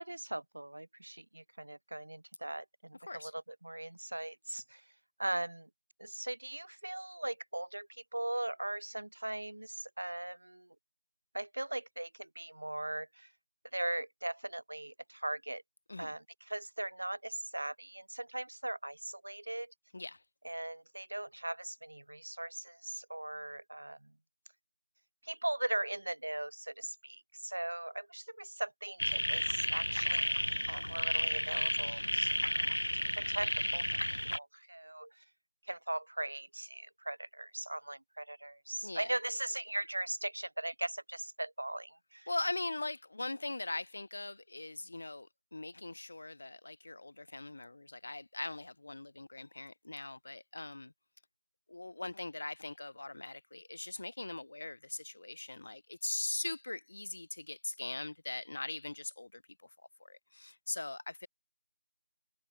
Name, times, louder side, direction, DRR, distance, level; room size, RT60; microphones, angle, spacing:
voice 1, 0.0-4.8 5.2-5.7 6.0-10.7 11.3-13.3 13.7-15.6 16.0-19.7 20.4-24.1 25.2-35.2 35.6-42.3, right 1 dB, 45° right, 0.7 m, -39 dB
sound 1, 29.0-34.4, left 1 dB, 70° left, 1.3 m, -32 dB
voice 2, 38.8-39.2 42.3-50.9 51.7-59.4 60.0-61.3, left 2 dB, 35° left, 2.2 m, -41 dB
figure-of-eight pair, 170°, 0 cm